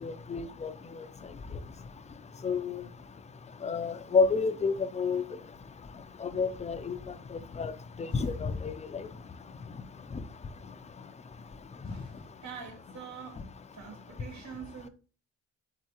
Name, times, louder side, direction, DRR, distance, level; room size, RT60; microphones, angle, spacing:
voice 1, 0.0-0.7 2.4-2.7 3.6-5.2 6.2-7.0 7.6-7.7 8.1-9.0, left 4 dB, 25° left, 0.4 m, -29 dB
voice 2, 11.9-12.2 12.4-13.4 13.7-14.9, right 7 dB, 65° right, 1.5 m, -45 dB
4.6 x 3.9 x 2.9 m
cardioid pair, 90°, 30 cm